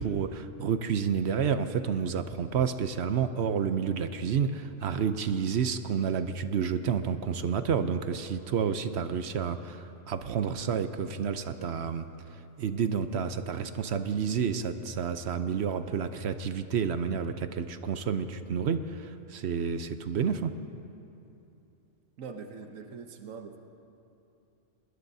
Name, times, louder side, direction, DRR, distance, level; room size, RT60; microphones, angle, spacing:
voice 1, 0.0-12.0 12.6-20.6, right 7 dB, 60° right, 10 dB, 0.9 m, -30 dB
voice 2, 22.2-23.6, right 5 dB, 75° right, 5 dB, 1.3 m, -42 dB
25.0 x 20.5 x 2.7 m, 2.8 s
omnidirectional pair, 1.4 m